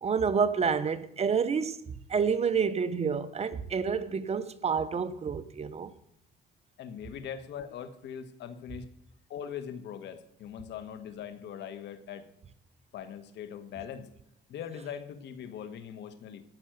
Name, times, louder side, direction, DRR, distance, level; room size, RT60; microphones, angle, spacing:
voice 1, 0.0-1.8 2.1-5.9, right 6 dB, 35° right, 0.9 m, -28 dB
voice 2, 6.8-8.9 9.3-12.3 12.9-14.1 14.5-16.4, left 8 dB, 70° left, 1.4 m, -41 dB
14.0 x 6.2 x 9.3 m
cardioid pair, 110°, 18 cm